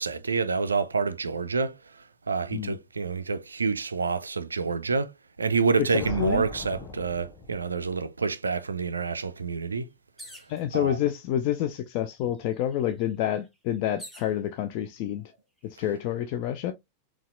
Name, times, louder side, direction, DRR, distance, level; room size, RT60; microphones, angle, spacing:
voice 1, 0.0-1.8 2.3-5.1 5.4-9.8 10.7-11.0, right 4 dB, 75° right, 0.3 m, -28 dB
voice 2, 5.8-6.4 10.5-15.2 15.6-16.7, left 11 dB, 45° left, 0.3 m, -28 dB
sound 1, 6.0-7.9, left 3 dB, 30° left, 0.7 m, -39 dB
sound 2, 10.2-10.6 11.5-11.6 11.9-14.3 15.1-15.6, equal, ahead, 0.9 m, -47 dB
3.9 x 2.4 x 2.4 m
figure-of-eight pair, 90°, 0 cm